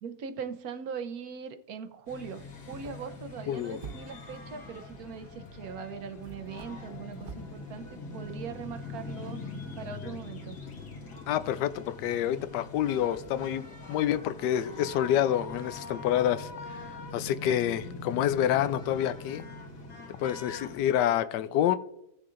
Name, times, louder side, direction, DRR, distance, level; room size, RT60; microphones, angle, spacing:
voice 1, 0.0-9.4 9.8-10.6, right 6 dB, 65° right, 9 dB, 1.2 m, -40 dB
sound 1, 2.1-21.0, left 3 dB, 70° left, 2.1 m, -43 dB
sound 2, 2.5-4.4 5.5-5.6 6.2-7.5, right 5 dB, 40° right, 0.9 m, -47 dB
voice 2, 3.5-3.8 11.3-16.8 17.1-19.4 20.2-21.8, left 11 dB, 90° left, 13 dB, 1.2 m, -28 dB
17.0 x 6.7 x 2.5 m, 0.82 s
omnidirectional pair, 1.8 m